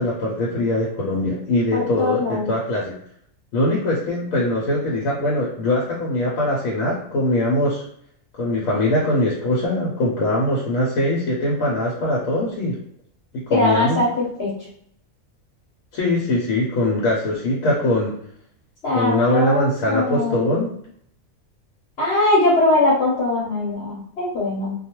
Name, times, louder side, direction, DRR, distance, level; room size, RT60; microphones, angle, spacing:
voice 1, 0.0-2.9 3.5-7.8 8.4-12.8 13.3-14.0 15.9-18.2 18.9-20.7, left 1 dB, 85° left, -5 dB, 1.1 m, -22 dB
voice 2, 1.7-2.5 13.5-14.5 18.8-20.5 22.0-24.7, left 2 dB, 55° left, -6 dB, 1.0 m, -21 dB
2.3 x 2.2 x 2.9 m, 0.67 s
omnidirectional pair, 1.4 m